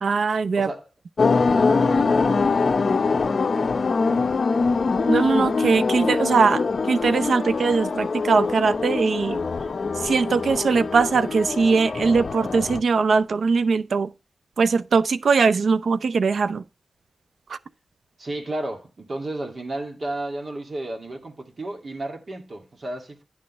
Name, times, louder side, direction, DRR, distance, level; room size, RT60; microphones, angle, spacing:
voice 1, 0.0-0.7 5.1-9.4 10.0-14.1 14.6-16.6 17.5-17.6, right 5 dB, 85° right, 0.6 m, -21 dB
voice 2, 0.5-0.9 1.4-2.2 18.2-23.2, right 1 dB, 50° right, 2.3 m, -33 dB
sound 1, 1.2-12.8, left 4 dB, 60° left, 0.9 m, -23 dB
10.5 x 6.4 x 4.3 m
wide cardioid pair, 135°, 0 cm